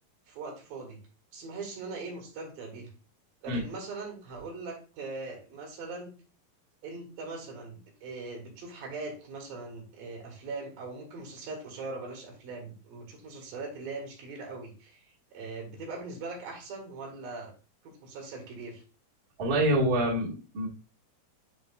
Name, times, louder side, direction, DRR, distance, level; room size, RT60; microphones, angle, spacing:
voice 1, 0.3-1.0 1.3-2.9 3.4-6.1 6.8-17.5 17.8-18.8, right 3 dB, 65° right, 0 dB, 3.3 m, -41 dB
voice 2, 19.4-20.7, right 1 dB, 35° right, -4 dB, 1.4 m, -26 dB
10.5 x 4.3 x 2.5 m, 0.36 s
omnidirectional pair, 4.8 m